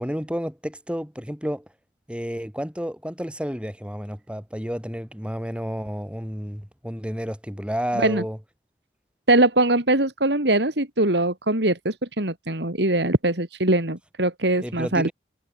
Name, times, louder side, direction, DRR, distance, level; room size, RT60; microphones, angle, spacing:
voice 1, 0.0-1.7 2.1-8.4 14.6-15.1, equal, 5° right, 6.3 m, -31 dB
voice 2, 9.3-15.1, right 2 dB, 70° right, 3.7 m, -22 dB
head